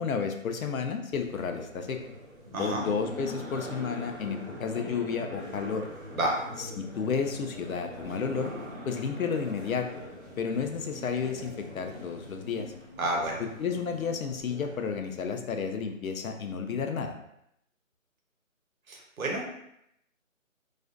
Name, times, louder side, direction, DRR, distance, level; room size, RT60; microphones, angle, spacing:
voice 1, 0.0-2.0 2.6-5.9 6.8-8.5 8.9-10.0 10.4-12.7 13.4-17.2, left 6 dB, 80° left, 5 dB, 0.5 m, -32 dB
sound 1, 1.1-15.0, left 1 dB, 30° right, 0.6 m, -43 dB
voice 2, 13.0-13.4 18.9-19.5, right 1 dB, 85° right, 0 dB, 0.8 m, -29 dB
2.4 x 2.1 x 2.4 m, 0.77 s
figure-of-eight pair, 165°, 41 cm